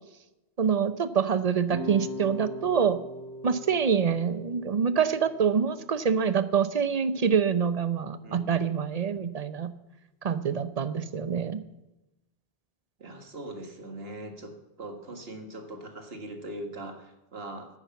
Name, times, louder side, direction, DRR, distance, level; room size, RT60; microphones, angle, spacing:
voice 1, 0.6-3.0 3.4-9.7 10.2-11.6, right 7 dB, 45° right, 13 dB, 0.6 m, -26 dB
sound 1, 1.7-6.8, equal, 20° right, 3.0 m, -41 dB
voice 2, 8.2-8.7 13.0-14.5 14.8-17.7, right 1 dB, 65° right, 4 dB, 1.9 m, -40 dB
10.0 x 9.9 x 7.0 m, 0.99 s
omnidirectional pair, 1.1 m